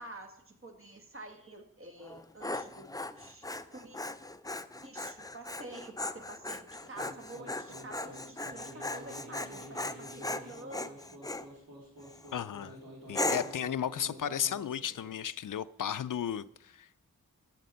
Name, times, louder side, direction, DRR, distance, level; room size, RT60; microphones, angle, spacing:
voice 1, 0.0-4.0 4.8-11.2, right 1 dB, 40° right, 4 dB, 1.8 m, -48 dB
Dog, 2.0-11.5 12.0-12.4 13.1-13.6, left 2 dB, 10° left, 0.5 m, -38 dB
sound 1, 6.8-15.2, equal, 80° right, 3.5 m, -49 dB
voice 2, 12.3-12.8 13.1-16.9, left 9 dB, 70° left, 16 dB, 0.5 m, -34 dB
13.0 x 7.4 x 5.6 m, 0.76 s
wide cardioid pair, 80°, 33 cm